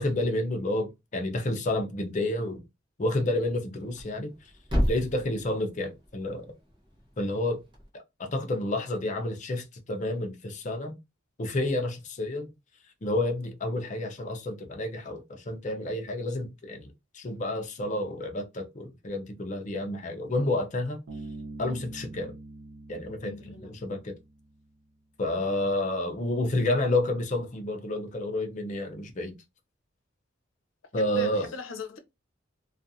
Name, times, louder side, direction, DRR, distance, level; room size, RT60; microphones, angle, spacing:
voice 1, 0.0-2.6 3.0-4.3 4.9-6.5 7.2-7.6 8.2-10.9 11.4-12.5 13.0-21.0 21.6-22.3 22.9-23.3 23.6-24.1 25.2-29.4 30.9-31.5, left 1 dB, 40° left, 0.5 m, -30 dB
Thump thud, 3.8-7.9, equal, 25° right, 0.8 m, -34 dB
Bass guitar, 21.1-24.6, right 2 dB, 75° right, 0.8 m, -44 dB
voice 2, 23.2-23.8 31.0-32.0, left 3 dB, 90° left, 0.6 m, -39 dB
2.4 x 2.3 x 2.6 m
head